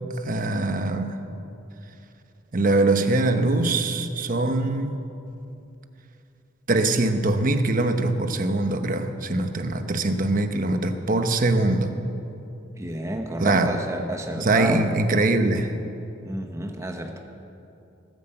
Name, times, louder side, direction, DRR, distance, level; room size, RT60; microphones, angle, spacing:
voice 1, 0.2-1.2 2.5-5.0 6.7-11.9 13.4-13.8 14.4-15.7, right 2 dB, 45° right, 7 dB, 1.0 m, -22 dB
voice 2, 12.8-14.9 16.2-17.2, right 1 dB, 15° right, 3 dB, 1.1 m, -30 dB
18.0 x 10.0 x 7.8 m, 2.7 s
head